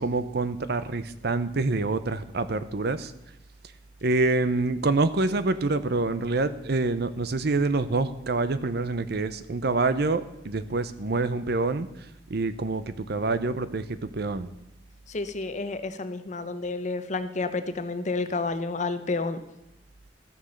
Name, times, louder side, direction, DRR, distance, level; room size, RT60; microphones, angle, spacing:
voice 1, 0.0-3.1 4.0-11.9 12.3-13.8 14.1-14.5, right 3 dB, 60° right, 13 dB, 0.7 m, -26 dB
voice 2, 15.1-19.4, left 3 dB, 40° left, 11 dB, 0.8 m, -30 dB
13.5 x 6.9 x 6.4 m, 0.88 s
head